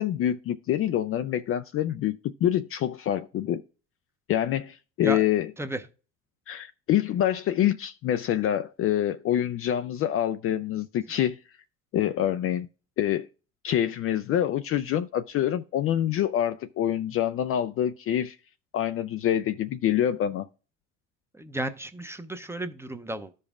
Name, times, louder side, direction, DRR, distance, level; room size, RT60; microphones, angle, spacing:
voice 1, 0.0-3.6 4.3-5.5 6.5-11.4 11.9-12.7 13.0-13.3 13.6-18.4 18.7-20.5, left 11 dB, 40° left, 0.4 m, -26 dB
voice 2, 21.4-23.4, right 1 dB, 5° right, 0.6 m, -33 dB
13.5 x 5.3 x 2.4 m
supercardioid pair, 85°, 34 cm